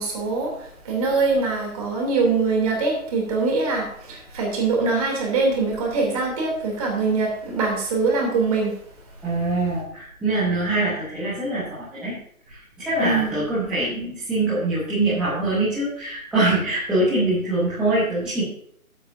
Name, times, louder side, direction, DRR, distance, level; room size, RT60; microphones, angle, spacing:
voice 1, 0.0-8.7 13.0-13.4, right 3 dB, 25° right, 0 dB, 3.0 m, -23 dB
voice 2, 9.2-12.1 12.5-18.4, right 2 dB, ahead, -13 dB, 1.2 m, -24 dB
16.0 x 8.3 x 2.7 m, 0.65 s
figure-of-eight pair, 150°, 43 cm